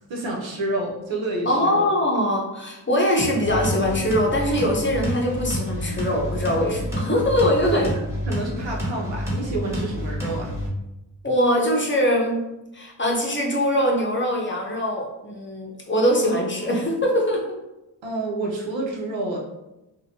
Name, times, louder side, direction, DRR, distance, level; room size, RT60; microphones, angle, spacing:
voice 1, 0.0-1.9 7.7-10.5 18.0-19.4, right 2 dB, 80° right, -1 dB, 0.7 m, -29 dB
voice 2, 1.5-7.9 11.2-12.4 12.7-17.6, equal, 25° left, -2 dB, 0.7 m, -22 dB
sound 1, 3.2-10.7, equal, 5° right, 1.1 m, -29 dB
2.6 x 2.1 x 2.7 m, 0.95 s
cardioid pair, 50°, 44 cm